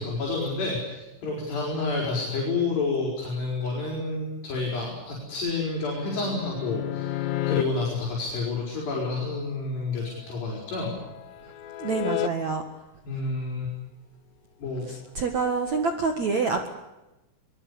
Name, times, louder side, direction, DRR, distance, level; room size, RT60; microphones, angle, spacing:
voice 1, 0.0-11.0 13.1-13.7 14.6-14.9, left 3 dB, 55° left, -2 dB, 7.6 m, -29 dB
sound 1, 5.9-7.6 10.3-12.3 15.7-16.0, left 14 dB, 80° left, 3.7 m, -32 dB
voice 2, 11.8-12.6 14.8-16.7, right 4 dB, 60° right, 6 dB, 1.9 m, -27 dB
23.5 x 21.0 x 8.6 m, 1.0 s
omnidirectional pair, 5.9 m